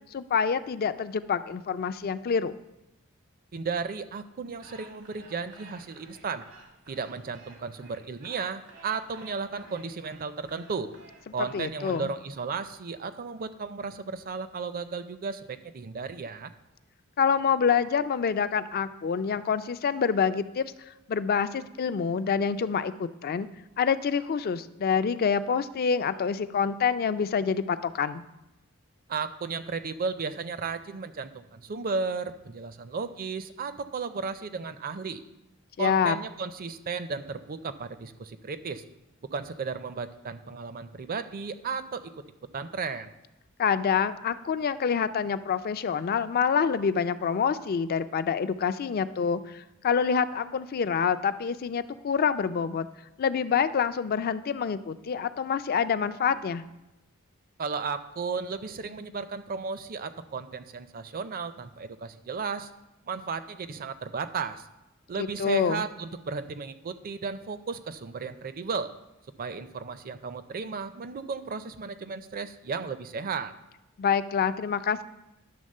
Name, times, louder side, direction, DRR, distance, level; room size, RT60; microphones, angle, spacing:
voice 1, 0.1-2.6 11.5-12.1 17.2-20.7 21.1-23.5 23.8-28.2 35.8-36.2 43.6-52.9 53.2-56.6 65.2-65.8 74.0-75.0, left 6 dB, 45° left, 13 dB, 0.4 m, -27 dB
voice 2, 3.5-6.5 6.9-10.9 11.3-16.5 29.1-35.2 35.8-38.8 39.3-42.2 42.5-43.1 57.6-62.7 63.1-64.7 65.1-68.9 69.4-73.5, right 5 dB, 45° right, 11 dB, 0.5 m, -34 dB
sound 1, 4.5-12.0, right 2 dB, 85° right, 1.6 m, -52 dB
10.5 x 3.6 x 6.4 m, 0.94 s
head